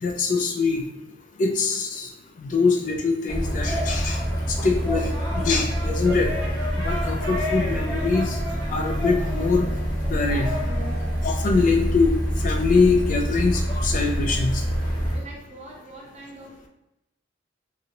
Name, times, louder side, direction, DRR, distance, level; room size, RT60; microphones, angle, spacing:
voice 1, 0.0-0.8 1.4-2.1 2.4-4.2 4.5-6.3 6.8-8.4 8.7-9.7 10.0-10.5 11.2-14.6, left 4 dB, 40° left, 3 dB, 0.3 m, -23 dB
sound 1, 3.3-15.2, equal, 20° left, 0.7 m, -26 dB
Brass instrument, 6.0-8.8, right 2 dB, 85° right, 0.5 m, -43 dB
voice 2, 15.1-16.7, right 2 dB, 35° right, -3 dB, 0.7 m, -43 dB
2.8 x 2.5 x 2.9 m, 0.90 s
head